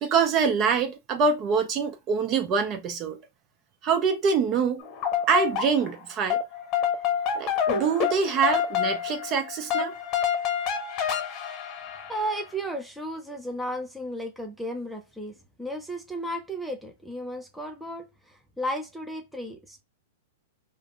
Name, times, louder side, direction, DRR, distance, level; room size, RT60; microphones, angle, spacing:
voice 1, 0.0-3.2 3.8-4.8 5.3-6.4 7.3-9.9, right 5 dB, 35° right, 0.7 m, -25 dB
sound 1, 4.8-6.0 6.3-12.4, left 8 dB, 40° left, 0.8 m, -28 dB
voice 2, 12.1-15.3 15.6-19.8, equal, ahead, 0.6 m, -34 dB
3.3 x 2.1 x 2.4 m
hypercardioid pair, 120°, 0 cm